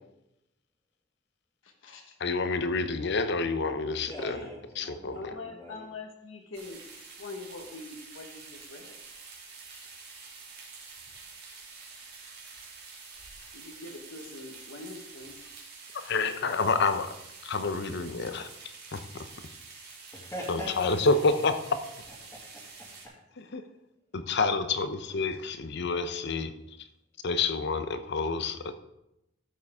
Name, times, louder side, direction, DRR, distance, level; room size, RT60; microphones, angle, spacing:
voice 1, 1.6-2.1 5.1-6.8 7.2-8.9 13.5-15.3, left 3 dB, 80° left, 2 dB, 1.3 m, -43 dB
voice 2, 2.2-4.4 4.8-5.3 15.9-17.2 17.4-19.3 20.5-21.8 23.5-23.6 24.1-26.5 27.2-28.8, left 4 dB, 60° left, 11 dB, 0.7 m, -28 dB
voice 3, 4.1-5.8 20.1-20.9 22.2-22.6, equal, 15° left, -4 dB, 2.1 m, -41 dB
sound 1, 6.5-23.1, right 4 dB, 55° right, 2.6 m, -48 dB
13.5 x 7.3 x 3.6 m, 0.88 s
head